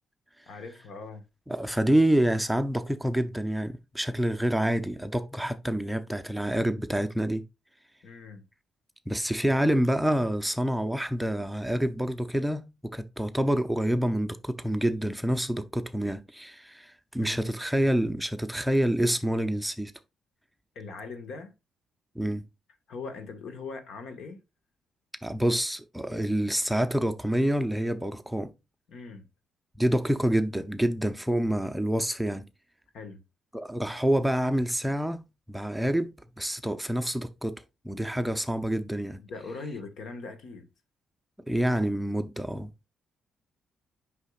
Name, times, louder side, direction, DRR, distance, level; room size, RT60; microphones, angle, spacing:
voice 1, 0.5-1.2 8.0-8.5 17.2-17.5 20.7-21.5 22.9-24.4 28.9-29.3 32.9-33.2 39.2-40.7, left 4 dB, 70° left, 1.4 m, -41 dB
voice 2, 1.5-7.4 9.1-19.9 22.2-22.4 25.2-28.5 29.8-32.4 33.5-35.2 35.5-37.5 37.8-39.2 41.5-42.7, right 1 dB, 5° right, 0.6 m, -27 dB
8.2 x 5.6 x 2.4 m
cardioid pair, 90°, 0 cm